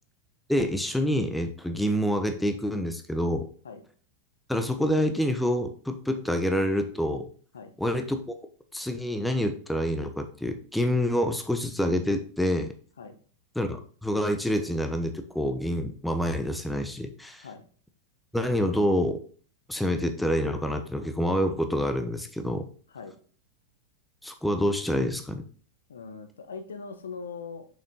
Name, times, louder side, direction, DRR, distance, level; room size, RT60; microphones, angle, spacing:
voice 1, 0.5-3.5 4.5-7.3 7.8-8.2 8.7-12.7 13.5-17.5 18.3-19.2 19.7-22.7 24.2-25.4, equal, 5° left, 7 dB, 1.0 m, -27 dB
voice 2, 25.9-27.7, left 5 dB, 70° left, 8 dB, 1.2 m, -40 dB
6.7 x 5.7 x 3.8 m, 0.43 s
figure-of-eight pair, 90°, 0 cm